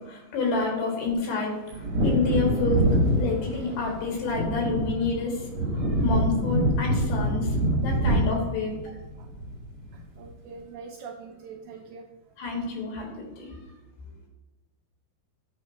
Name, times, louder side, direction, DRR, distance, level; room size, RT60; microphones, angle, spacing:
voice 1, 0.0-2.8 3.2-7.6 7.8-8.7 12.4-13.7, left 4 dB, 80° left, -1 dB, 3.6 m, -29 dB
Wind / Thunder, 1.7-10.0 10.3-10.4, right 1 dB, 70° right, 1.6 m, -26 dB
voice 2, 9.9-12.1, right 5 dB, 90° right, 2 dB, 2.1 m, -43 dB
8.4 x 2.9 x 4.1 m, 1.2 s
omnidirectional pair, 4.8 m